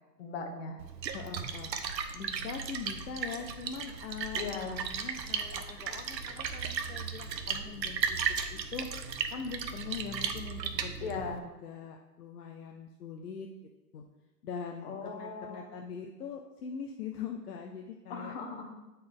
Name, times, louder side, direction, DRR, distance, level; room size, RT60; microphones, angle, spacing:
voice 1, 0.2-0.8 4.3-4.8 11.0-11.4 14.8-15.6 18.1-18.7, left 4 dB, 40° left, 3 dB, 1.1 m, -38 dB
Splash splatter, 0.8-11.4, right 6 dB, 85° right, 0.8 m, -36 dB
voice 2, 1.1-1.7 2.1-8.9 9.3-11.2 11.6-13.5 13.9-14.0 14.4-18.3, left 6 dB, 65° left, 2 dB, 0.8 m, -42 dB
8.8 x 4.2 x 3.7 m, 1.1 s
hypercardioid pair, 145°, 50 cm